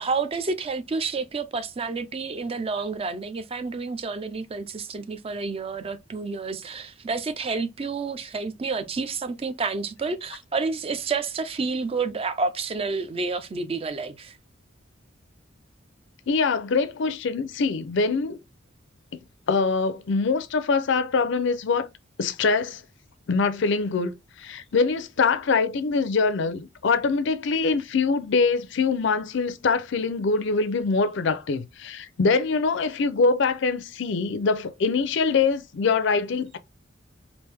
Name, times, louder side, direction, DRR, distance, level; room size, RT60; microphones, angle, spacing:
voice 1, 0.0-14.4, right 4 dB, 30° right, 0.4 m, -29 dB
voice 2, 16.3-18.4 19.1-21.9 22.2-22.8 23.3-24.1 24.4-36.6, left 4 dB, 65° left, 0.5 m, -24 dB
3.4 x 2.5 x 3.3 m
head